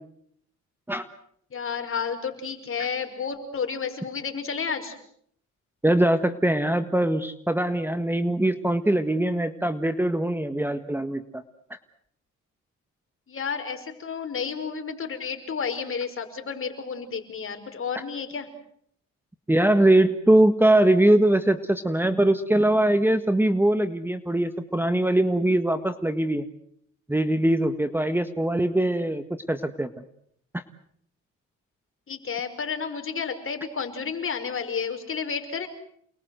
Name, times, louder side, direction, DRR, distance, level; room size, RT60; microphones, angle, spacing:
voice 1, 1.5-5.0 13.3-18.5 32.1-35.7, left 6 dB, 45° left, 6 dB, 5.4 m, -31 dB
voice 2, 5.8-11.4 19.5-26.5 27.1-30.0 30.5-30.6, right 1 dB, 5° right, 10 dB, 1.5 m, -22 dB
29.5 x 21.0 x 7.9 m, 0.68 s
cardioid pair, 90°, 30 cm